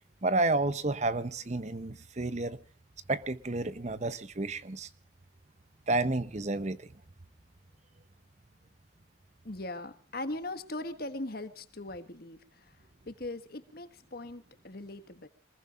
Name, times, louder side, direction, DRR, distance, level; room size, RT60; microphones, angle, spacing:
voice 1, 0.2-2.6 3.1-4.9 5.9-6.9, right 2 dB, 35° right, 0.8 m, -30 dB
voice 2, 9.4-15.3, left 2 dB, 50° left, 1.6 m, -40 dB
26.0 x 20.5 x 2.5 m
head